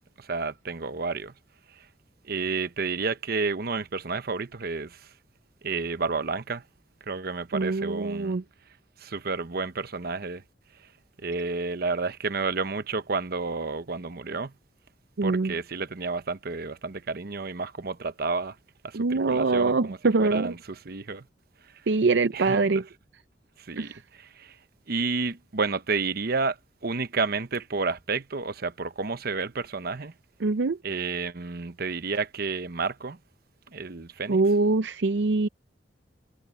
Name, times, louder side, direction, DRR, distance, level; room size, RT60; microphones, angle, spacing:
voice 1, 0.2-1.3 1.7-1.9 2.3-5.1 5.6-6.6 7.1-8.4 9.0-10.4 11.2-14.5 15.2-18.6 18.8-21.2 22.3-22.7 23.6-24.6 24.9-26.6 26.8-30.1 30.8-33.2 33.7-34.4, right 4 dB, 60° right, 0.9 m, -31 dB
voice 2, 7.5-8.4 15.2-15.5 18.9-20.5 21.9-22.8 23.8-24.0 30.4-30.8 34.3-35.5, right 3 dB, 75° right, 0.6 m, -24 dB
head